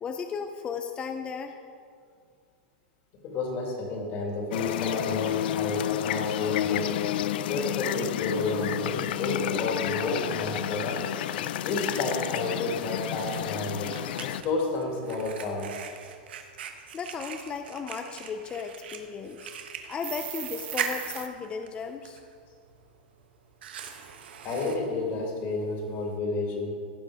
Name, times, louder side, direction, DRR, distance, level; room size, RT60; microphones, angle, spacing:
voice 1, 0.0-1.6 16.9-19.4 19.9-22.2, left 6 dB, 20° left, 6 dB, 0.5 m, -35 dB
voice 2, 3.2-7.0 7.3-11.1 11.6-13.9 14.2-15.7 24.4-26.7, left 2 dB, 40° left, 0 dB, 2.5 m, -31 dB
sound 1, 4.5-14.4, left 12 dB, 70° left, 0.4 m, -30 dB
Fire, 11.2-26.2, right 7 dB, 85° right, 1.3 m, -42 dB
sound 2, 20.0-21.3, right 13 dB, 30° right, 0.6 m, -38 dB
16.5 x 6.2 x 4.9 m, 2.2 s
supercardioid pair, 150°, 5 cm